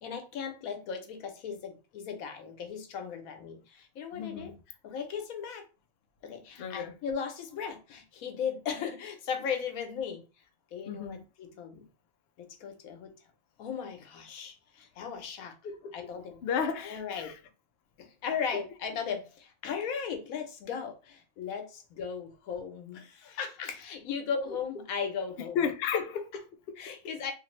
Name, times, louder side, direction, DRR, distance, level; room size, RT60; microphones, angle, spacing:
voice 1, 0.0-4.5 4.8-5.7 6.2-10.3 10.7-11.8 12.4-13.1 13.6-15.6 15.9-16.5 16.8-17.3 18.0-25.6 25.9-26.0 26.8-27.3, left 6 dB, 85° left, 1.1 m, -37 dB
voice 2, 4.1-4.6 6.6-7.0 10.9-11.2 15.6-16.1 16.4-17.4 24.4-24.8 25.5-26.7, left 7 dB, 65° left, 0.6 m, -34 dB
2.8 x 2.5 x 3.0 m
omnidirectional pair, 1.4 m